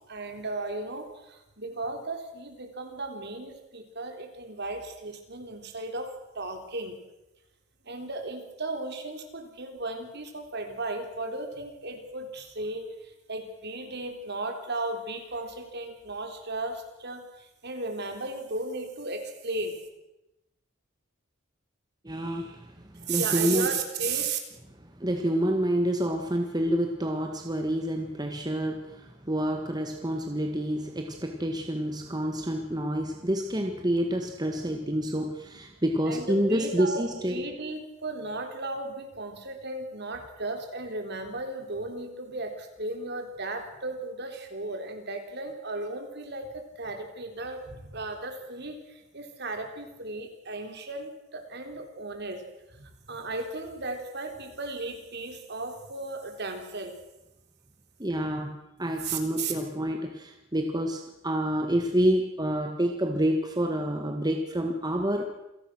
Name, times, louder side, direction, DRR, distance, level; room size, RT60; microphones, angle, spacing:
voice 1, 0.1-6.9 7.9-19.8 23.0-24.4 36.1-52.4 52.8-57.0 59.0-59.5, right 3 dB, 55° right, 5 dB, 3.9 m, -35 dB
voice 2, 22.0-23.7 25.0-37.4 58.0-65.2, equal, 20° right, 4 dB, 1.8 m, -28 dB
27.5 x 18.0 x 6.2 m, 0.93 s
head